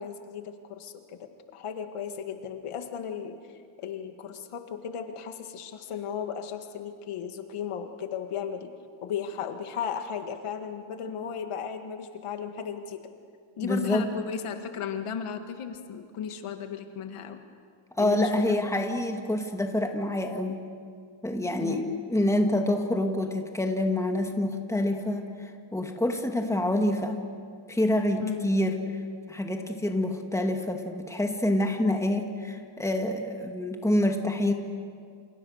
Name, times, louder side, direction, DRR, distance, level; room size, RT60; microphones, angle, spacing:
voice 1, 0.0-3.4 3.8-8.7 9.0-13.0 13.6-17.4 18.0-18.6 21.6-22.0 28.2-28.5, left 7 dB, 90° left, 6 dB, 2.1 m, -35 dB
voice 2, 13.6-14.0 18.0-20.6 21.2-27.2 27.7-28.8 29.3-34.5, left 1 dB, 5° left, 4 dB, 2.1 m, -27 dB
28.5 x 28.0 x 6.6 m, 2.2 s
cardioid pair, 130°, 50 cm